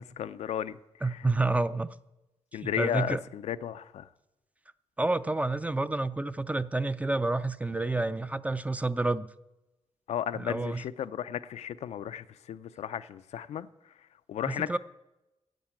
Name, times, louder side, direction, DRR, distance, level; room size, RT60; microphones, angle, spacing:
voice 1, 0.0-1.3 2.5-4.1 10.1-13.7 14.3-14.8, left 10 dB, 90° left, 0.5 m, -34 dB
voice 2, 1.0-1.9 2.6-3.2 5.0-9.3 10.3-10.8 14.5-14.8, right 2 dB, 15° right, 0.4 m, -29 dB
10.5 x 7.3 x 8.7 m
cardioid pair, 100°, 11 cm